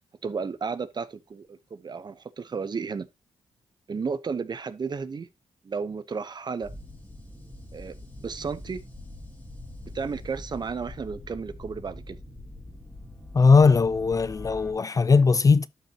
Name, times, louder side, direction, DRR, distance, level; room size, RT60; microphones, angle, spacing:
voice 1, 0.2-3.1 3.9-5.3 5.6-6.7 7.7-8.8 9.9-12.2, right 5 dB, 45° right, 1.0 m, -33 dB
sound 1, 6.6-14.7, left 1 dB, 10° left, 2.2 m, -43 dB
voice 2, 13.3-15.7, left 4 dB, 35° left, 0.4 m, -19 dB
12.0 x 5.5 x 2.9 m
cardioid pair, 90°, 11 cm